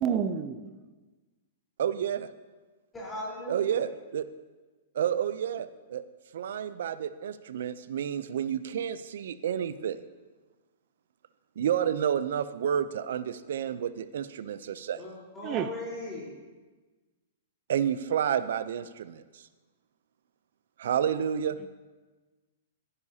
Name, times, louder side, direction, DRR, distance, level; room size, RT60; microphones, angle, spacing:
voice 1, 0.0-0.7 15.4-15.7, right 8 dB, 30° right, 10 dB, 0.6 m, -29 dB
voice 2, 1.8-2.3 3.5-4.2 4.9-6.0 6.3-10.0 11.6-15.0 17.7-19.5 20.8-21.6, right 9 dB, 70° right, 13 dB, 0.5 m, -30 dB
voice 3, 2.9-3.8 15.0-16.3, left 1 dB, 15° left, -5 dB, 4.0 m, -38 dB
16.0 x 9.8 x 2.8 m, 1.3 s
hypercardioid pair, 145°, 0 cm